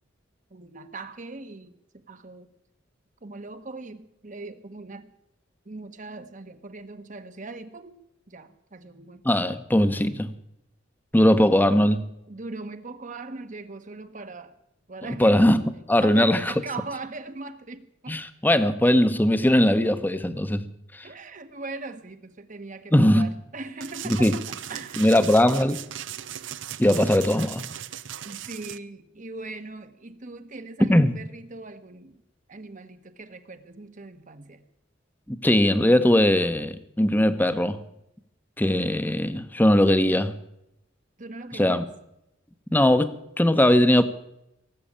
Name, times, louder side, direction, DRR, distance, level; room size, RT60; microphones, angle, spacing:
voice 1, 0.5-2.5 3.2-5.1 5.6-8.0 8.3-9.3 11.3-11.4 12.3-14.6 14.9-15.4 16.0-18.2 21.0-25.2 28.2-32.2 32.5-34.6 41.2-41.8, right 3 dB, 40° right, 9 dB, 1.1 m, -40 dB
voice 2, 9.2-10.3 11.1-12.1 15.2-15.6 15.9-16.5 18.1-20.7 20.9-21.1 22.9-23.3 24.0-24.4 25.0-25.8 26.8-27.7 30.9-31.1 35.3-37.8 38.6-40.3 41.5-41.8 42.7-44.0, left 1 dB, 10° left, 11 dB, 0.9 m, -20 dB
sound 1, 23.8-28.8, right 11 dB, 75° right, 0.6 m, -38 dB
18.0 x 7.8 x 8.7 m, 0.83 s
head